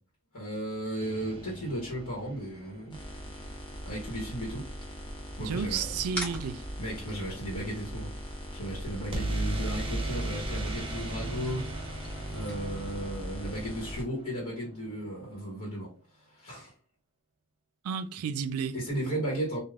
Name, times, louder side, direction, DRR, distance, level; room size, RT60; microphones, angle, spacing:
voice 1, 0.3-3.0 3.8-4.7 5.4-5.9 6.8-8.1 8.5-11.7 12.3-15.9 16.3-16.7 18.7-19.6, right 1 dB, 90° left, 1.2 m, -35 dB
sound 1, 1.0-3.0 9.1-14.9, right 2 dB, 25° right, 0.6 m, -37 dB
sound 2, 2.9-14.0, equal, 20° left, 0.5 m, -40 dB
voice 2, 5.4-6.6 17.8-18.8, right 6 dB, 90° right, 0.4 m, -32 dB
sound 3, 6.1-13.1, equal, 5° left, 1.0 m, -45 dB
3.3 x 2.3 x 2.4 m
head